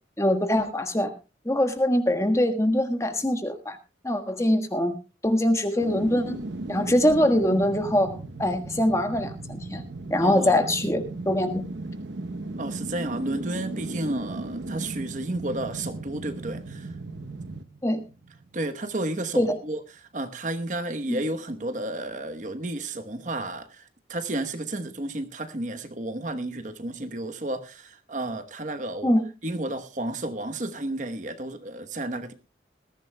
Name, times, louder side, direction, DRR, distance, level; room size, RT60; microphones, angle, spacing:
voice 1, 0.2-1.1 1.4-3.8 4.0-4.9 5.2-6.4 6.7-8.1 8.4-9.8 10.1-11.6 17.8-18.0 19.4-19.6 21.1-21.2 29.0-29.2, left 1 dB, 15° left, 1.4 m, -23 dB
sound 1, 5.8-18.8 19.2-19.3, right 2 dB, 85° right, 0.9 m, -36 dB
voice 2, 10.2-10.5 12.6-16.9 18.5-29.1 29.4-32.3, right 2 dB, 45° right, 1.0 m, -32 dB
20.5 x 14.5 x 2.2 m
head